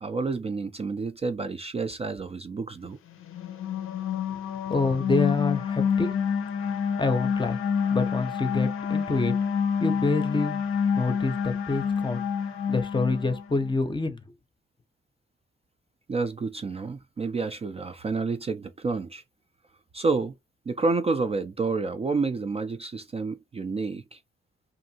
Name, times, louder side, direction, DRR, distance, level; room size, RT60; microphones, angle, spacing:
voice 1, 0.0-3.0 16.1-19.2 19.9-20.3 20.7-24.2, right 4 dB, 30° right, 0.4 m, -29 dB
sound 1, 3.2-13.8, left 7 dB, 80° left, 0.6 m, -28 dB
voice 2, 4.7-6.1 7.0-7.6 7.9-9.4 9.8-10.6 10.9-12.3 12.7-14.2, left 3 dB, 20° left, 0.6 m, -27 dB
2.6 x 2.5 x 2.7 m
cardioid pair, 75°, 21 cm